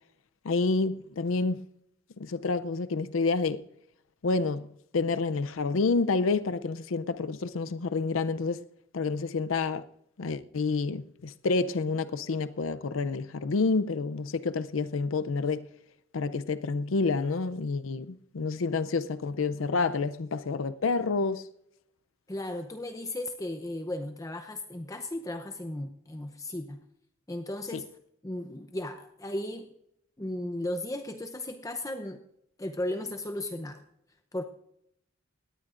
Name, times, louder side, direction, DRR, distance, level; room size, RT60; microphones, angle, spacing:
voice 1, 0.4-1.6 2.2-3.6 4.2-4.7 4.9-8.6 8.9-9.8 10.2-15.7 16.1-21.5 27.7-27.8, left 4 dB, 75° left, 0.5 m, -28 dB
voice 2, 22.3-26.8 27.3-27.9 28.2-29.7 30.2-32.2 32.6-33.8 34.3-34.4, left 1 dB, 15° left, 0.7 m, -35 dB
19.0 x 17.5 x 2.5 m
head